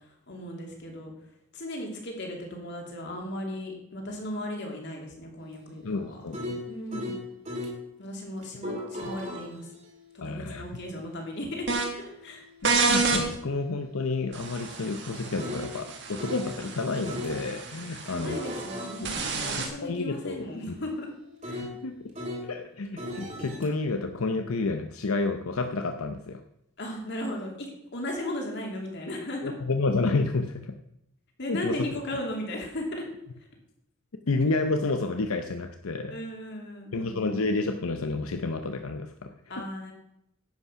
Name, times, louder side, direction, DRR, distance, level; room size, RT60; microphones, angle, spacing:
voice 1, 0.3-1.1 1.5-6.2 6.7-7.2 8.0-9.7 10.1-12.4 18.0-21.1 21.4-21.7 26.8-29.5 31.4-33.0 36.1-37.2 39.5-39.9, left 1 dB, 55° left, 1 dB, 2.9 m, -36 dB
sound 1, 5.4-7.8 8.4-16.5 17.1-17.4 18.1-22.5 23.0-23.7, left 1 dB, 35° right, 2.6 m, -40 dB
voice 2, 5.8-6.6 9.0-9.2 10.2-10.6 12.6-18.4 19.0-19.1 19.8-20.8 21.6-22.1 22.4-26.4 29.4-30.8 31.4-31.7 34.3-36.2 36.9-39.7, left 3 dB, 85° left, 6 dB, 0.7 m, -30 dB
sound 2, 11.7-11.8 12.6-13.2 14.3-19.7, right 4 dB, 55° right, 1.9 m, -30 dB
10.5 x 8.3 x 5.7 m, 0.78 s
head